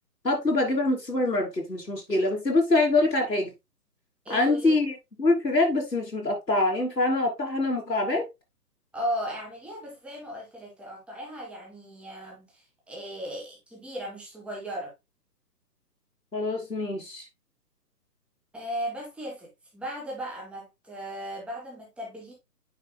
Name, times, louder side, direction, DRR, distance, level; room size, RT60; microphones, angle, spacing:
voice 1, 0.2-3.5 4.3-8.3 16.3-17.2, left 2 dB, 85° left, 3.3 m, -25 dB
voice 2, 4.2-4.7 8.9-14.9 18.5-22.3, equal, ahead, 1.6 m, -36 dB
9.5 x 5.5 x 2.2 m
figure-of-eight pair, 135°, 48 cm